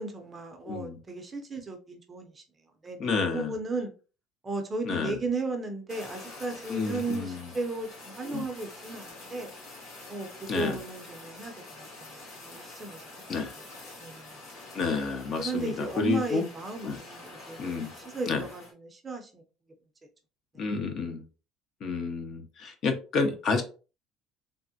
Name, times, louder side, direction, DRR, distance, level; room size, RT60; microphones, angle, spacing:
voice 1, 0.0-2.4 2.8-3.9 4.4-9.5 10.1-13.1 13.4-13.6 14.0-14.4 15.4-19.4 20.5-20.6, right 3 dB, 20° right, 0.5 m, -35 dB
voice 2, 0.6-1.0 3.0-3.5 4.9-5.1 6.7-7.4 8.3-8.5 10.5-10.8 13.3-13.5 14.7-16.4 16.8-17.0 17.6-17.9 18.3-18.4 20.6-21.2 21.8-23.6, left 4 dB, 45° left, 0.6 m, -30 dB
Fire, 5.9-18.7, left 2 dB, 60° left, 1.5 m, -46 dB
3.4 x 2.1 x 2.7 m
cardioid pair, 135°, 0 cm